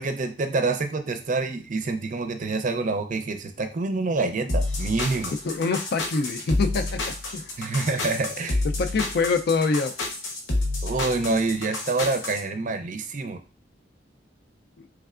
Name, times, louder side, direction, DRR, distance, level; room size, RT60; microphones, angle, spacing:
voice 1, 0.0-5.3 7.6-8.6 10.8-13.4, right 3 dB, 45° right, 7 dB, 0.5 m, -27 dB
sound 1, 4.5-12.4, left 2 dB, 85° left, 0.9 m, -29 dB
voice 2, 5.4-7.0 7.3-7.4 8.8-9.9, left 4 dB, 55° left, 9 dB, 0.4 m, -24 dB
3.4 x 3.2 x 2.4 m, 0.33 s
head